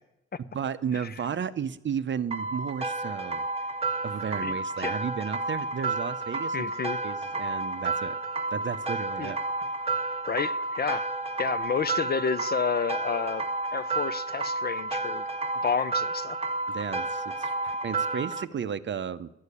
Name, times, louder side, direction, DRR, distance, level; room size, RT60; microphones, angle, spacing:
voice 1, 0.4-3.5 4.0-6.7 7.0-8.2 8.5-9.4 16.7-19.3, right 7 dB, 40° right, 0.6 m, -33 dB
sound 1, 2.3-18.4, right 3 dB, 20° right, 1.0 m, -31 dB
voice 2, 4.4-5.0 6.5-7.0 9.2-9.3 10.3-11.1 11.4-13.4 13.7-15.2 15.6-16.4, left 6 dB, 30° left, 0.6 m, -30 dB
12.5 x 6.6 x 9.8 m
cardioid pair, 90°, 30 cm